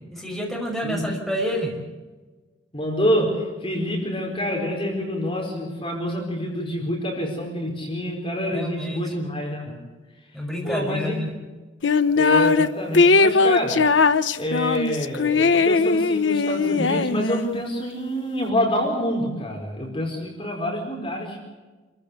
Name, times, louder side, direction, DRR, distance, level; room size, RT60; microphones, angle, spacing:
voice 1, 0.1-1.8 8.5-9.1 10.3-11.3, equal, ahead, -1 dB, 5.6 m, -28 dB
voice 2, 2.7-9.8 10.6-11.2 12.2-14.0 14.4-21.4, equal, 30° left, 0 dB, 4.6 m, -27 dB
sound 1, 11.8-12.7 12.9-17.6, left 4 dB, 85° left, 0.8 m, -19 dB
27.5 x 15.0 x 8.2 m, 1.3 s
head